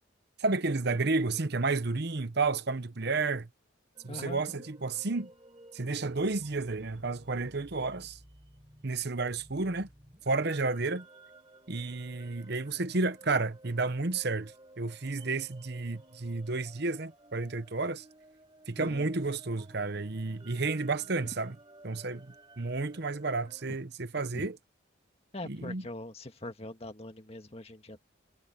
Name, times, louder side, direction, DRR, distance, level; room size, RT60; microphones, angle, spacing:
voice 1, 0.4-3.5 4.0-5.3 5.7-8.2 8.8-9.9 10.3-11.0 11.7-14.5 14.8-18.0 18.7-21.5 21.8-24.6 25.4-25.8, right 3 dB, 50° right, 0.9 m, -31 dB
sound 1, 3.9-23.8, right 2 dB, 25° right, 4.5 m, -56 dB
voice 2, 4.1-4.6 18.8-19.1 24.3-24.5 25.3-28.1, left 1 dB, 30° left, 1.8 m, -42 dB
head